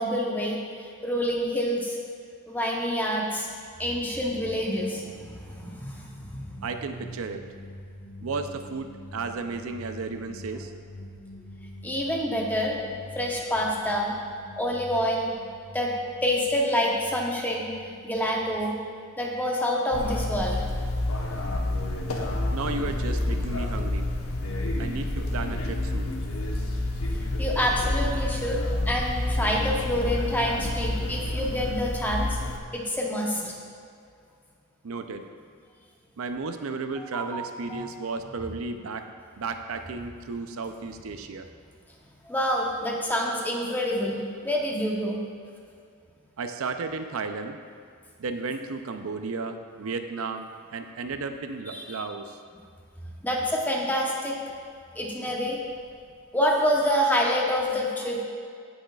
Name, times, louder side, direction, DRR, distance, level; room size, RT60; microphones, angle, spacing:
voice 1, 0.0-2.0 2.5-3.5 3.8-6.8 7.0-7.1 11.8-12.8 13.1-14.1 14.6-15.3 15.7-15.9 16.2-17.7 18.0-18.7 19.2-20.6 27.4-32.4 32.7-33.5 37.0-37.8 42.2-45.2 51.7-52.0 53.2-54.4 54.9-55.6 56.3-58.2, equal, 10° left, -2 dB, 0.9 m, -27 dB
sound 1, 4.2-20.1 20.8-23.9, left 1 dB, 60° left, 1.8 m, -47 dB
voice 2, 6.6-7.4 8.2-10.7 22.5-24.1 24.8-26.1 34.8-35.3 36.2-39.0 39.4-41.5 46.4-47.6 48.2-52.4, right 4 dB, 75° right, 7 dB, 0.5 m, -33 dB
sound 2, 19.9-32.6, left 1 dB, 85° left, 1.0 m, -29 dB
15.5 x 6.3 x 2.4 m, 2.3 s
head